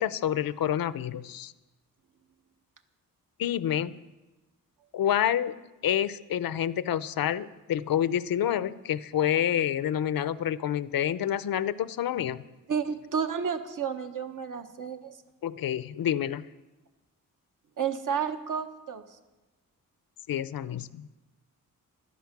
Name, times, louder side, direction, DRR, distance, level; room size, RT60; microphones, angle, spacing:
voice 1, 0.0-1.5 3.4-4.0 4.9-5.5 5.8-12.4 15.4-16.5 20.3-21.1, left 10 dB, 80° left, 15 dB, 0.7 m, -28 dB
voice 2, 12.7-15.2 17.8-19.0, right 7 dB, 65° right, 7 dB, 1.3 m, -31 dB
17.0 x 12.5 x 6.0 m, 1.1 s
cardioid pair, 85°, 34 cm